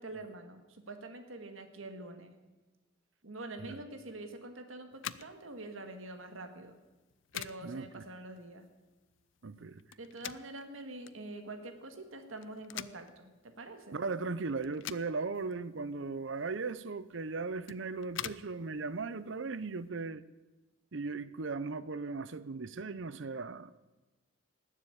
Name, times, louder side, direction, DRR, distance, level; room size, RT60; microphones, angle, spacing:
voice 1, 0.0-2.4 3.2-6.8 7.3-8.7 10.0-14.0, right 2 dB, 80° right, 1.8 m, -45 dB
sound 1, 4.9-19.9, left 11 dB, 70° left, 0.5 m, -48 dB
voice 2, 7.6-8.0 9.4-9.8 13.9-20.2 20.9-23.8, right 4 dB, 65° right, 0.7 m, -37 dB
19.0 x 7.4 x 8.5 m
head